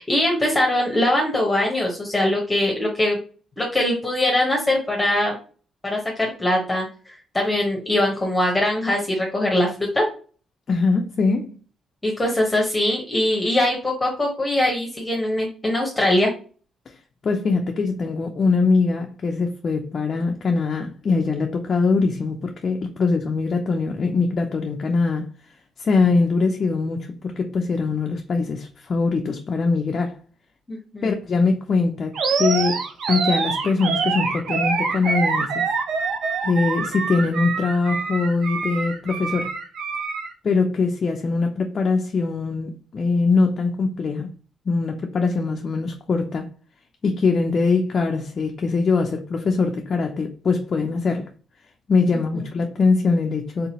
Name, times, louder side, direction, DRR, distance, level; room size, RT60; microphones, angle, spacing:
voice 1, 0.0-3.2 3.6-5.3 5.8-10.1 12.0-16.3 30.7-31.1, left 1 dB, 15° left, 1.0 m, -22 dB
voice 2, 10.7-11.6 17.2-25.3 25.8-30.2 31.0-32.8 33.1-35.6 36.4-39.5 40.4-44.3 44.7-46.5 47.0-51.3 51.9-53.7, left 4 dB, 45° left, 0.4 m, -22 dB
Animal, 32.1-40.3, right 5 dB, 70° right, 0.7 m, -25 dB
3.4 x 2.8 x 2.8 m
cardioid pair, 90°, 0 cm